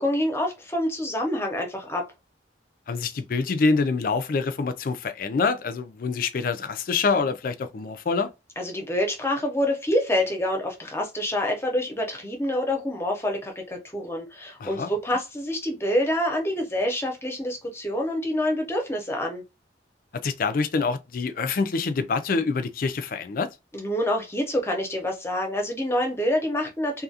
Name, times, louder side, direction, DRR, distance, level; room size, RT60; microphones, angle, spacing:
voice 1, 0.0-2.1 8.6-19.4 23.7-27.0, left 1 dB, 15° left, 0.7 m, -27 dB
voice 2, 2.9-8.3 14.6-14.9 20.2-23.5, left 4 dB, 50° left, 0.4 m, -26 dB
2.6 x 2.4 x 2.7 m
head